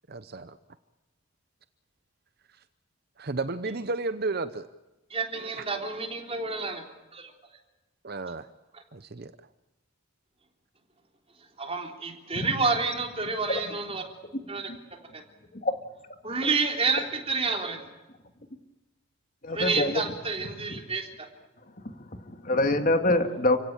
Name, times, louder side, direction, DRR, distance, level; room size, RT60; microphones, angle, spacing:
voice 1, 0.1-0.6 3.2-4.7 8.0-8.5 8.9-9.3, right 3 dB, 45° right, 12 dB, 0.7 m, -32 dB
voice 2, 5.1-6.8 7.1-7.3 8.7-8.8 11.4-14.0 14.5-14.7 15.1-15.2 16.2-17.9 19.5-21.3, right 4 dB, 25° right, 3 dB, 3.5 m, -29 dB
voice 3, 19.4-20.0 21.8-23.6, left 2 dB, 40° left, 7 dB, 2.0 m, -25 dB
29.5 x 16.5 x 8.9 m, 1.1 s
head